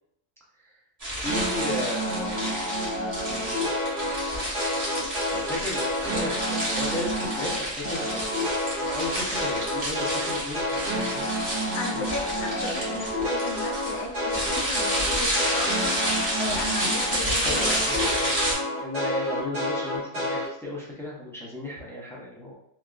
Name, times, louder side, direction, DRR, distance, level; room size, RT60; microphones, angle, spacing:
sound 1, 1.0-18.5, equal, 35° right, 1.0 m, -30 dB
voice 1, 1.2-2.5 3.2-3.7 5.3-11.3 11.9-12.0 17.2-22.5, left 1 dB, 5° left, -6 dB, 0.4 m, -35 dB
sound 2, 1.2-7.5 7.8-17.1 17.4-20.4, equal, 85° right, 1.5 m, -29 dB
voice 2, 11.7-17.8, left 3 dB, 75° left, 3 dB, 0.8 m, -35 dB
3.3 x 2.3 x 2.4 m, 0.76 s
omnidirectional pair, 1.2 m